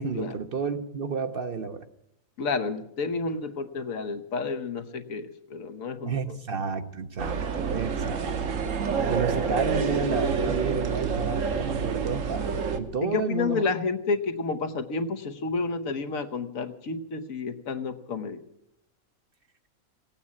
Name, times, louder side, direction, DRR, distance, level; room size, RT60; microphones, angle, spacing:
voice 1, 0.0-1.9 6.1-8.6 9.0-13.6, right 5 dB, 50° right, 9 dB, 0.8 m, -31 dB
voice 2, 2.4-6.4 13.0-18.4, left 4 dB, 75° left, 7 dB, 1.4 m, -30 dB
sound 1, 7.2-12.8, right 5 dB, 65° right, 1.4 m, -28 dB
18.0 x 8.7 x 8.4 m, 0.80 s
omnidirectional pair, 1.4 m